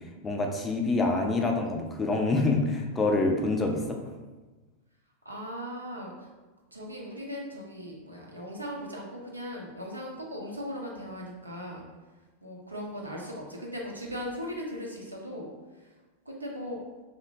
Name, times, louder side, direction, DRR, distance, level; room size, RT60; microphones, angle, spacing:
voice 1, 0.2-4.0, left 2 dB, 15° left, 2 dB, 0.3 m, -26 dB
voice 2, 5.2-6.3 6.7-11.9 12.4-15.9 16.3-16.8, equal, 85° right, -2 dB, 0.5 m, -38 dB
2.7 x 2.0 x 2.7 m, 1.2 s
figure-of-eight pair, 90°, 0 cm